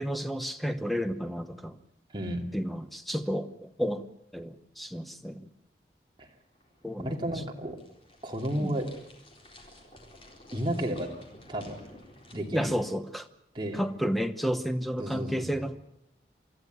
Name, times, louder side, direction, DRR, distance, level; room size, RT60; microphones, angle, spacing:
voice 1, 0.0-1.8 2.5-4.1 4.3-5.5 6.8-7.2 8.6-8.8 12.5-13.3 13.7-15.8, equal, ahead, 9 dB, 0.9 m, -31 dB
voice 2, 2.1-2.5 6.2-6.3 7.0-7.8 8.2-8.8 10.5-11.1 11.5-11.8 12.3-12.7 13.5-13.8 15.0-15.6, right 1 dB, 25° right, 1 dB, 2.8 m, -32 dB
sound 1, 6.4-12.3, left 1 dB, 30° left, 4.2 m, -53 dB
24.5 x 13.5 x 9.4 m, 0.79 s
head